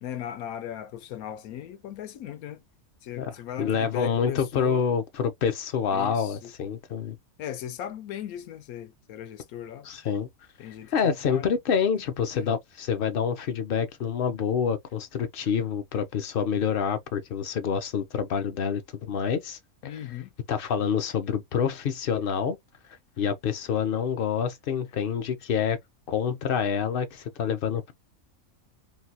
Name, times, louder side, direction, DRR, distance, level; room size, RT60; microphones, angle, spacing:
voice 1, 0.0-2.6 3.0-4.8 5.9-6.5 7.4-9.9 10.6-11.6 12.3-12.6 19.8-20.3, left 10 dB, 90° left, 1.1 m, -38 dB
voice 2, 3.6-7.2 9.8-10.3 10.6-20.0 20.5-22.6 23.2-25.8 26.1-27.9, left 7 dB, 60° left, 0.6 m, -27 dB
3.2 x 2.3 x 2.6 m
omnidirectional pair, 1.5 m